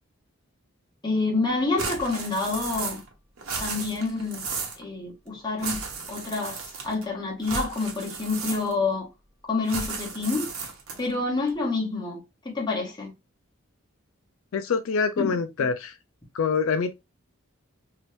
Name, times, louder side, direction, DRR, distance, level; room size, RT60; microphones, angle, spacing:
voice 1, 1.0-3.0 3.6-4.4 4.8-5.8 6.1-9.1 9.5-10.5 11.0-12.2 12.5-13.1 15.2-15.4, left 3 dB, 20° left, 1.1 m, -28 dB
sound 1, 1.8-3.1 3.4-4.8 5.6-7.0 7.4-8.9 9.7-11.1, right 4 dB, 90° right, 1.0 m, -34 dB
voice 2, 14.5-15.9 16.3-16.9, left 5 dB, 70° left, 0.4 m, -25 dB
2.8 x 2.6 x 3.1 m
head